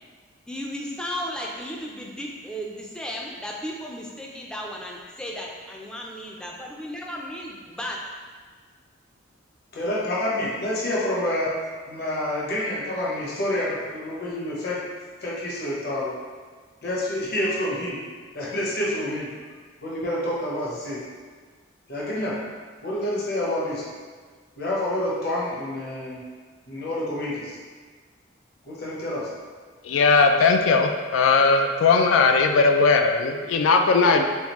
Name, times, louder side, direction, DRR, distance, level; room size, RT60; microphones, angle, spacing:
voice 1, 0.5-8.0, equal, 5° left, -2 dB, 0.4 m, -34 dB
voice 2, 9.7-11.5 11.9-14.8 15.2-16.2 16.8-18.0 18.3-19.3 19.8-21.0 21.9-22.4 22.8-23.9 24.6-26.2 26.7-27.6 28.6-29.3, left 1 dB, 55° left, -6 dB, 0.9 m, -28 dB
voice 3, 29.8-34.2, left 4 dB, 80° left, 4 dB, 0.3 m, -18 dB
3.5 x 3.5 x 3.0 m, 1.5 s
head